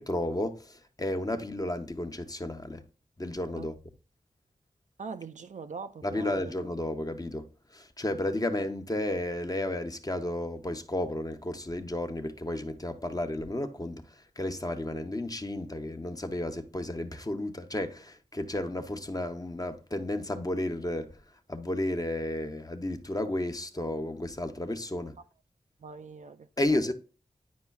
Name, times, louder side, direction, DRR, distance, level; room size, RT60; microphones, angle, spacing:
voice 1, 0.0-2.8 3.2-3.8 6.0-7.5 7.7-21.1 21.5-25.1 26.6-26.9, left 1 dB, 25° left, 0.7 m, -32 dB
voice 2, 5.0-6.5 25.8-26.8, right 5 dB, 55° right, 0.4 m, -42 dB
9.4 x 4.9 x 2.3 m
cardioid pair, 55°, 15 cm